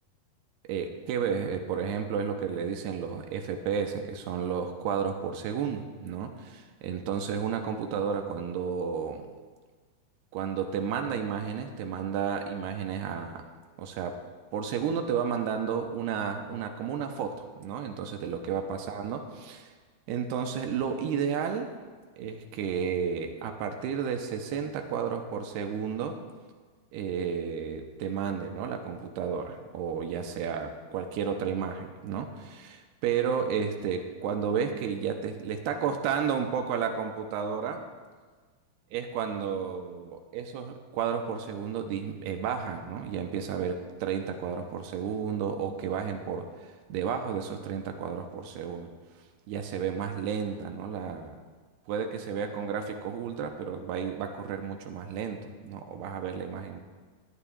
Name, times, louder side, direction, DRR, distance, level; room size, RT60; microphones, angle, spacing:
voice 1, 0.7-9.3 10.3-13.4 13.8-14.2 14.5-19.7 20.1-21.7 22.2-26.2 26.9-37.9 38.9-48.9 49.5-51.4 51.9-56.8, right 7 dB, 90° right, 5 dB, 2.8 m, -32 dB
18.5 x 12.0 x 2.4 m, 1.5 s
omnidirectional pair, 4.6 m